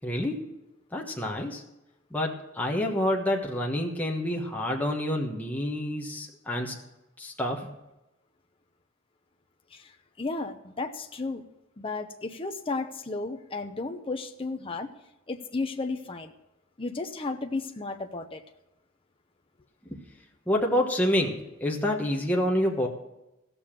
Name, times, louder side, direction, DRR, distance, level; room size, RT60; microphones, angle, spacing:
voice 1, 0.0-0.5 0.9-1.6 2.1-6.7 7.2-7.7 19.8-20.0 20.5-22.9, left 1 dB, 10° left, -1 dB, 1.2 m, -28 dB
voice 2, 9.7-11.4 11.8-14.9 15.3-16.3 16.8-18.4, left 3 dB, 25° left, 5 dB, 0.7 m, -33 dB
15.5 x 6.9 x 7.4 m, 0.94 s
head